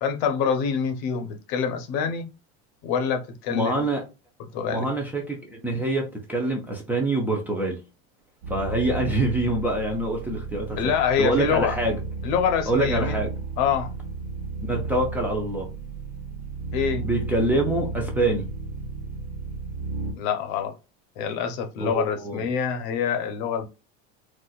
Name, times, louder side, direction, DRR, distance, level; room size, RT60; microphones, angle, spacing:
voice 1, 0.0-2.3 2.8-3.9 4.5-4.9 10.8-11.8 12.2-13.2 13.6-13.9 16.7-17.1 20.1-20.7 21.2-23.7, left 7 dB, 55° left, 0.8 m, -26 dB
voice 2, 3.5-4.0 4.7-7.8 8.5-10.9 11.2-12.0 12.7-13.3 14.6-15.7 17.0-18.5 21.8-22.5, right 2 dB, 5° right, 0.5 m, -25 dB
sound 1, 8.4-20.1, right 3 dB, 70° right, 1.1 m, -33 dB
4.1 x 2.4 x 2.3 m
cardioid pair, 155°, 32 cm